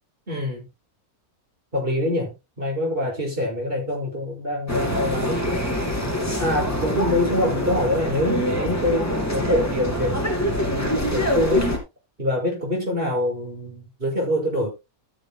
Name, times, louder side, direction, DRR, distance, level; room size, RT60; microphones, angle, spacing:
voice 1, 0.3-0.6 1.7-2.3 2.6-5.7 6.4-11.8 12.2-14.7, left 1 dB, 35° right, 6.9 m, -25 dB
sound 1, 4.7-11.8, left 1 dB, 10° left, 2.7 m, -25 dB
13.0 x 10.5 x 2.3 m
omnidirectional pair, 1.6 m